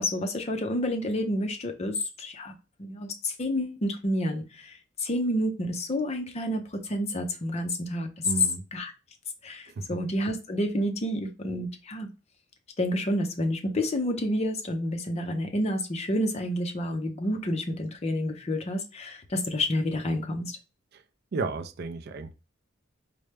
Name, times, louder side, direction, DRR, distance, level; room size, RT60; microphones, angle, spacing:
voice 1, 0.0-8.3 8.7-8.9 9.4-12.1 12.8-20.6, left 1 dB, 35° left, 6 dB, 0.5 m, -29 dB
voice 2, 8.2-8.6 9.8-10.0 20.9-21.0 21.3-22.3, right 3 dB, 50° right, 9 dB, 0.4 m, -33 dB
4.3 x 2.1 x 3.2 m, 0.31 s
head